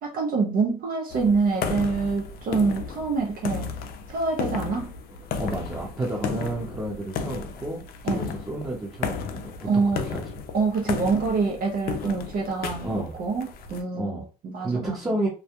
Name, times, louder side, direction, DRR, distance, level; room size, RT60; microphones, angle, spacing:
voice 1, 0.0-3.7 4.1-4.9 8.0-8.4 9.6-10.0 10.5-15.2, right 4 dB, 55° right, 0.7 m, -26 dB
sound 1, 1.1-13.8, left 6 dB, 65° left, 0.5 m, -34 dB
voice 2, 5.4-7.8 8.1-10.2 12.8-13.1 14.0-14.2 14.6-15.3, right 2 dB, 20° right, 0.8 m, -31 dB
2.3 x 2.2 x 2.8 m
cardioid pair, 110°, 17 cm